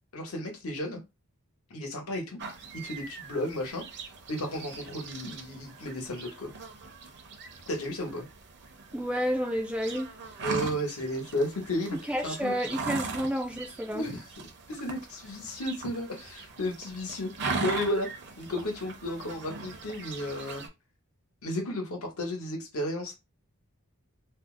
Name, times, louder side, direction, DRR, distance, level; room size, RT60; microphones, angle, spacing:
voice 1, 0.1-1.0 1.7-2.4 2.8-3.8 4.3-6.5 7.7-8.3 10.4-12.6 13.9-14.2 14.7-18.1 18.4-20.7 21.4-23.2, left 1 dB, 70° left, 1.0 m, -33 dB
sound 1, 2.4-20.7, right 4 dB, 50° right, 0.6 m, -40 dB
voice 2, 8.9-10.1 12.1-14.1, equal, 5° right, 0.3 m, -30 dB
2.6 x 2.0 x 3.6 m
head